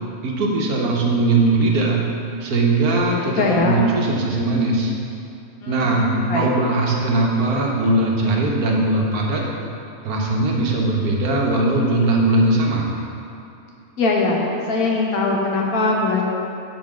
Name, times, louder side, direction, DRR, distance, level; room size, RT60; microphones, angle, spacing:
voice 1, 0.2-2.0 2.4-4.9 5.7-9.5 10.0-12.9, right 2 dB, 90° right, -1 dB, 1.5 m, -20 dB
voice 2, 3.1-3.8 5.6-5.9 6.3-6.5 14.0-14.4 14.7-16.2, left 3 dB, 80° left, -1 dB, 1.5 m, -21 dB
5.6 x 5.6 x 6.1 m, 2.7 s
omnidirectional pair, 1.5 m